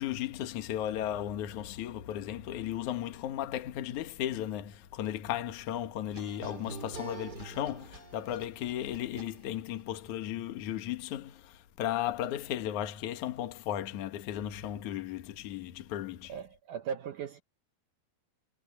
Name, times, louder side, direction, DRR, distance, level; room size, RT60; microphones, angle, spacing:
voice 1, 0.0-16.3, left 11 dB, 60° left, 2.6 m, -35 dB
sound 1, 6.1-9.8, right 4 dB, 25° right, 3.7 m, -46 dB
voice 2, 16.3-17.4, right 7 dB, 70° right, 2.2 m, -38 dB
omnidirectional pair, 4.3 m